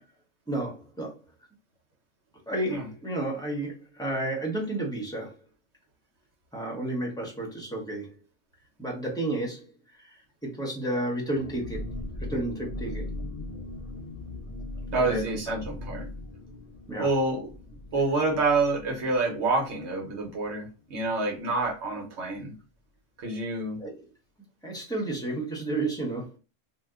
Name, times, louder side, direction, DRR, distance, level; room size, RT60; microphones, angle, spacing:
voice 1, 0.5-1.2 2.5-5.4 6.5-8.1 8.8-9.7 10.0-11.9 12.2-13.1 14.9-15.6 16.9-17.1 23.8-24.0 24.6-26.4, right 2 dB, 5° left, 0.7 m, -32 dB
sound 1, 11.3-20.7 21.0-21.1 21.4-21.7, left 2 dB, 65° left, 0.3 m, -39 dB
voice 2, 14.9-16.1 17.0-17.5 17.9-22.5 23.2-23.8, right 3 dB, 65° right, 1.2 m, -27 dB
2.7 x 2.2 x 3.5 m
omnidirectional pair, 1.3 m